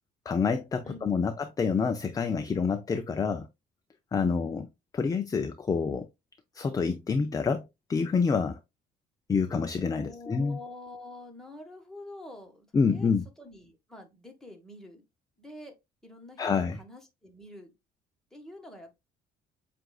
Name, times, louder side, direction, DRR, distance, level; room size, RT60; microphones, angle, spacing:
voice 1, 0.3-3.5 4.1-4.7 4.9-6.1 6.5-8.6 9.3-10.6 12.7-13.2 16.4-16.8, left 5 dB, 20° left, 0.4 m, -27 dB
voice 2, 0.8-1.3 4.2-4.5 9.9-15.0 15.4-15.7 16.0-17.7 18.3-19.0, left 2 dB, 5° left, 1.4 m, -47 dB
7.5 x 2.5 x 2.3 m
cardioid pair, 110°, 17 cm